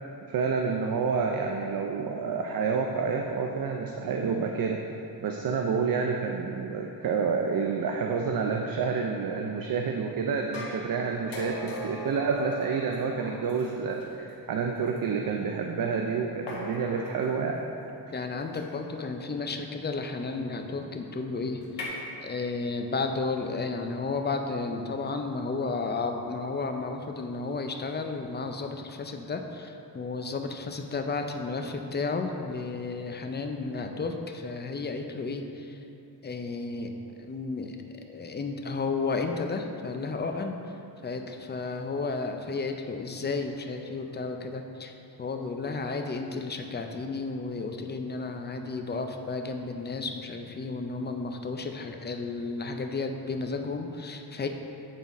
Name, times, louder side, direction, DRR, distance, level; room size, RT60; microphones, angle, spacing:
voice 1, 0.3-4.8 5.2-17.7, right 5 dB, 55° right, 2 dB, 0.5 m, -29 dB
sound 1, 10.5-14.0 15.0-15.1 16.5-17.3 18.5-18.9 21.6-21.9, left 1 dB, 80° left, 1.2 m, -39 dB
voice 2, 18.1-21.6 22.2-35.8 36.2-36.9 37.2-37.8 38.0-40.6 41.0-54.5, left 3 dB, 25° left, 5 dB, 0.4 m, -33 dB
8.1 x 4.0 x 4.1 m, 2.9 s
wide cardioid pair, 120°, 41 cm